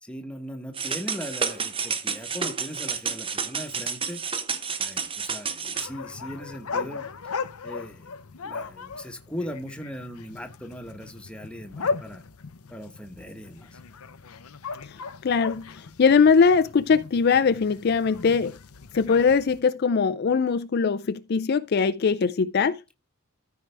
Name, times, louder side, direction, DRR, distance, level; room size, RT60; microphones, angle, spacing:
voice 1, 0.0-4.2 4.8-7.1 7.6-8.1 8.4-12.2 12.7-13.8, equal, 5° left, 1.1 m, -39 dB
sound 1, 0.7-5.9, right 6 dB, 25° right, 0.8 m, -30 dB
sound 2, 5.7-19.6, left 4 dB, 90° left, 0.7 m, -37 dB
voice 2, 15.2-18.6 18.9-22.8, left 5 dB, 50° left, 0.4 m, -21 dB
14.0 x 4.7 x 3.3 m
head